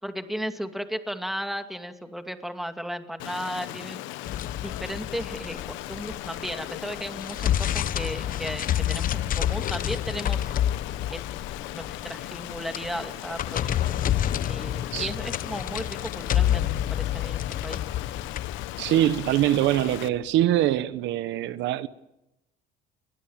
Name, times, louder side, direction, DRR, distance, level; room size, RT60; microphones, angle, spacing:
voice 1, 0.0-4.0 4.6-10.5 11.1-11.2 11.7-14.0 14.5-17.8, equal, ahead, 2.4 m, -35 dB
Stream, 3.2-20.1, left 16 dB, 80° left, 1.1 m, -38 dB
sound 1, 4.3-6.6 7.0-20.0, left 11 dB, 45° left, 1.0 m, -29 dB
voice 2, 18.8-21.9, right 13 dB, 70° right, 1.0 m, -23 dB
29.5 x 22.0 x 7.4 m
cardioid pair, 110°, 19 cm